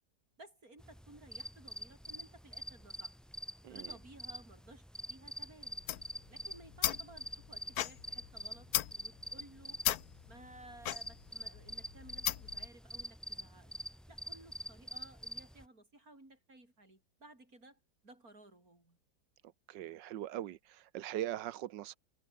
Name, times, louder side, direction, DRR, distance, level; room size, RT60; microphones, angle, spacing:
voice 1, 0.4-3.2 3.7-5.8 6.3-9.9 10.3-13.8 14.1-19.0, right 2 dB, 50° right, 7.5 m, -57 dB
sound 1, 0.8-15.7, equal, ahead, 1.8 m, -46 dB
sound 2, 5.7-12.7, left 12 dB, 65° left, 1.2 m, -38 dB
voice 2, 19.7-22.0, right 13 dB, 85° right, 1.5 m, -41 dB
omnidirectional pair, 1.9 m